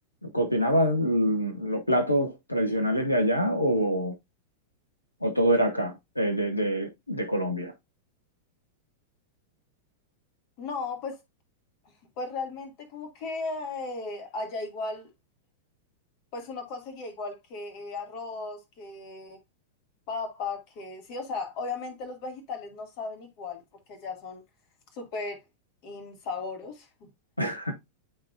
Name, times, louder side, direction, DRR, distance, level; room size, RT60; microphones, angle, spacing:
voice 1, 0.2-4.1 5.2-7.7 27.4-27.7, equal, 85° left, 1.1 m, -25 dB
voice 2, 10.6-11.2 12.2-15.1 16.3-19.4 20.1-23.6 23.9-24.4 24.9-25.4 25.8-27.1, left 3 dB, 45° left, 2.4 m, -36 dB
11.0 x 3.8 x 2.6 m
figure-of-eight pair, 90°, 0 cm